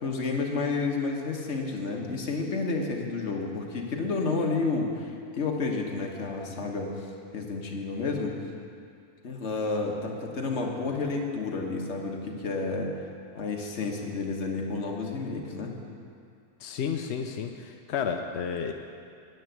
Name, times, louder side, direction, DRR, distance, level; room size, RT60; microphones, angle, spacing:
voice 1, 0.0-6.9 7.3-8.3 9.2-12.9 13.3-15.7, left 3 dB, 50° left, 0 dB, 1.5 m, -30 dB
voice 2, 16.6-18.7, left 7 dB, 65° left, 4 dB, 0.7 m, -31 dB
9.5 x 7.9 x 9.1 m, 2.5 s
omnidirectional pair, 1.7 m